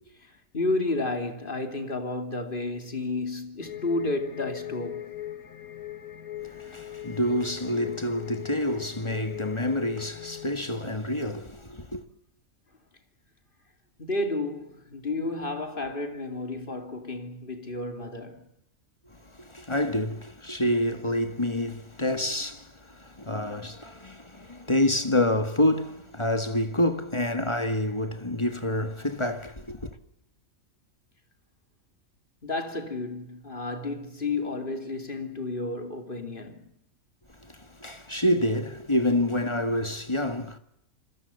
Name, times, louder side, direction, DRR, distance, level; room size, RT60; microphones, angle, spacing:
voice 1, 0.5-5.2 14.0-18.4 32.4-36.7, left 2 dB, 35° left, 2.9 m, -31 dB
sound 1, 3.6-10.5, left 12 dB, 80° left, 2.2 m, -39 dB
voice 2, 6.4-12.0 19.3-29.9 37.4-40.6, left 1 dB, 20° left, 1.9 m, -28 dB
27.0 x 25.0 x 6.9 m
omnidirectional pair, 1.5 m